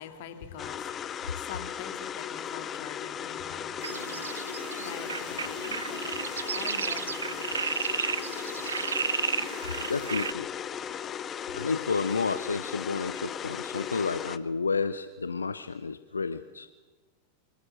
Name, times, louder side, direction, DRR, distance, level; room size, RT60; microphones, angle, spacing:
voice 1, 0.0-7.6, left 8 dB, 50° left, 2.1 m, -45 dB
sound 1, 0.6-14.4, left 8 dB, 25° left, 0.7 m, -37 dB
sound 2, 3.8-10.3, right 6 dB, 70° right, 0.7 m, -33 dB
voice 2, 8.1-8.8 9.9-10.5 11.5-16.7, left 4 dB, 75° left, 0.6 m, -31 dB
24.5 x 13.0 x 8.8 m
figure-of-eight pair, 90°, 0 cm